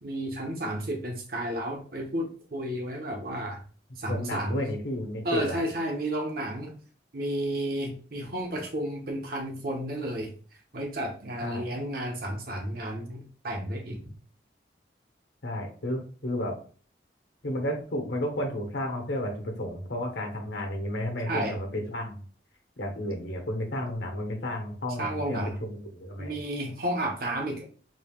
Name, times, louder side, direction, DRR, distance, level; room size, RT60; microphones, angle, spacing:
voice 1, 0.0-3.6 4.0-4.7 5.2-6.8 7.1-10.3 10.7-14.0 21.3-21.5 25.0-25.6 26.2-27.7, right 1 dB, 55° right, 2 dB, 1.0 m, -32 dB
voice 2, 4.1-5.6 11.4-11.7 15.4-16.6 17.4-22.2 22.8-26.4, left 1 dB, 75° left, 2 dB, 1.2 m, -32 dB
3.9 x 3.4 x 2.3 m, 0.41 s
head